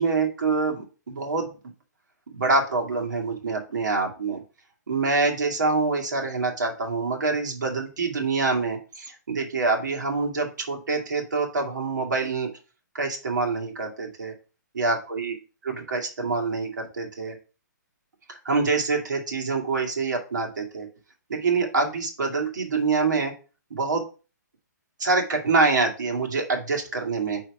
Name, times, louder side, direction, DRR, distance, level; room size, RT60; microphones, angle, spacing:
voice 1, 0.0-1.5 2.3-4.4 4.9-12.5 12.9-14.3 14.7-15.3 15.6-17.4 18.3-20.9 21.3-23.3 23.7-24.0 25.0-27.4, right 3 dB, 70° right, 2 dB, 2.2 m, -25 dB
4.7 x 4.4 x 4.9 m, 0.34 s
hypercardioid pair, 170°, 10 cm